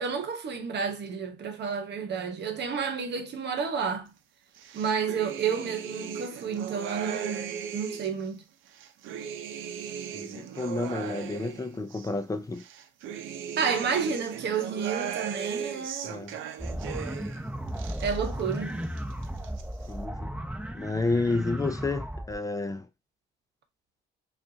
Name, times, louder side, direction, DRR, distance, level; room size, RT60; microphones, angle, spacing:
voice 1, 0.0-4.1 4.7-8.4 13.6-16.2 18.0-18.8, right 6 dB, 60° right, 1.0 m, -31 dB
sound 1, 4.6-8.2 8.7-12.1 12.6-17.4 17.7-18.6 18.8-19.6, right 8 dB, 85° right, 0.6 m, -37 dB
voice 2, 10.1-12.6 16.1-16.3 19.9-20.3 20.7-22.9, left 3 dB, 15° left, 0.4 m, -30 dB
sound 2, 16.6-22.3, right 1 dB, 5° right, 1.0 m, -35 dB
5.2 x 2.5 x 2.7 m
cardioid pair, 90°, 20 cm